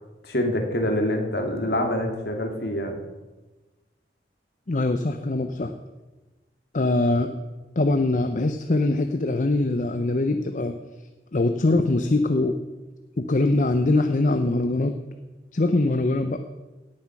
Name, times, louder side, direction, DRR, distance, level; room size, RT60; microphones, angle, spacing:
voice 1, 0.2-3.0, left 1 dB, 60° left, 3 dB, 2.2 m, -25 dB
voice 2, 4.7-5.7 6.7-7.3 7.8-10.8 11.3-12.6 13.2-15.0 15.5-16.4, left 2 dB, 45° left, 8 dB, 0.6 m, -22 dB
17.0 x 7.5 x 5.9 m, 1.2 s
head